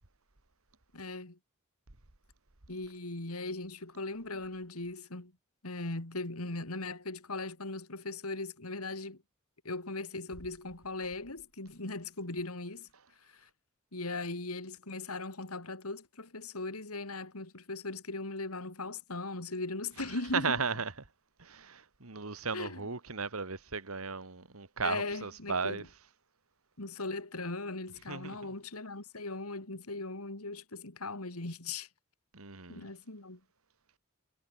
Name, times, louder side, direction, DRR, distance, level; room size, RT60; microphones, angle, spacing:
voice 1, 0.9-1.4 2.7-5.3 5.6-9.2 9.6-12.9 13.2-13.5 13.9-20.5 22.5-22.9 24.8-25.9 26.8-31.9 32.7-33.4, left 2 dB, 85° left, 3.1 m, -39 dB
voice 2, 20.3-20.9 21.4-25.8 28.1-28.5 32.3-32.9, right 5 dB, 75° right, 2.1 m, -35 dB
head